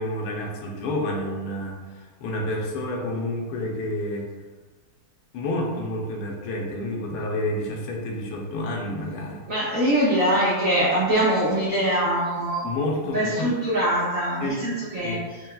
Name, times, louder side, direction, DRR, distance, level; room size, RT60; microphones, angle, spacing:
voice 1, 0.0-4.3 5.3-9.5 12.6-13.5 14.4-15.2, left 1 dB, 80° left, 0 dB, 1.6 m, -29 dB
voice 2, 9.5-12.7 13.1-15.2, right 1 dB, 60° right, -9 dB, 0.8 m, -23 dB
4.4 x 3.3 x 2.2 m, 1.3 s
omnidirectional pair, 2.4 m